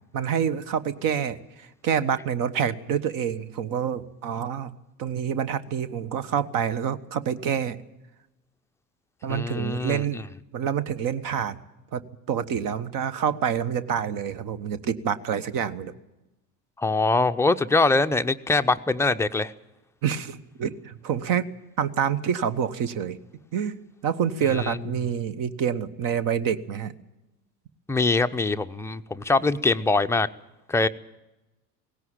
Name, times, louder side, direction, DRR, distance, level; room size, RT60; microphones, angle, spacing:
voice 1, 0.1-7.8 9.2-10.3 10.5-11.6 11.9-15.9 20.0-21.5 21.8-23.2 23.5-26.9, right 8 dB, 40° right, 16 dB, 1.3 m, -27 dB
voice 2, 9.3-10.2 16.8-19.5 24.6-24.8 27.9-30.3 30.7-30.9, left 3 dB, 5° left, 8 dB, 0.6 m, -23 dB
18.5 x 17.0 x 9.0 m, 0.98 s
figure-of-eight pair, 70°, 49 cm